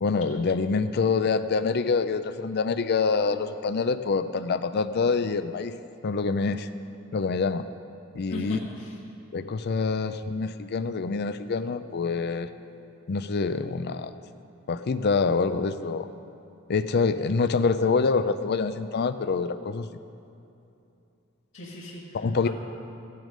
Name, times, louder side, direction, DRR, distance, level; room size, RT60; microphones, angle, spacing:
voice 1, 0.0-5.7 6.0-6.7 7.1-7.7 8.1-8.6 9.3-12.5 13.1-14.1 14.7-16.1 16.7-19.9 22.1-22.5, left 4 dB, 50° left, 11 dB, 0.5 m, -26 dB
voice 2, 8.3-9.0 21.5-22.5, left 1 dB, 65° left, -8 dB, 1.8 m, -36 dB
16.0 x 9.5 x 5.2 m, 2.7 s
head